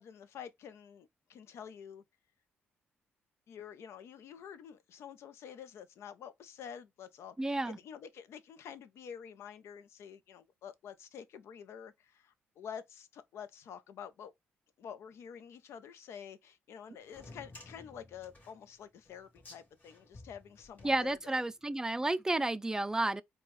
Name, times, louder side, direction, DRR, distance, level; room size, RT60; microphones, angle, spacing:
voice 1, 0.0-2.0 3.5-14.3 14.8-21.4, left 8 dB, 75° left, 0.6 m, -48 dB
voice 2, 7.4-7.8 20.8-23.2, right 2 dB, 15° right, 0.4 m, -31 dB
sound 1, 17.0-21.6, left 2 dB, 35° left, 2.0 m, -55 dB
4.3 x 2.3 x 3.1 m
cardioid pair, 75°, 5 cm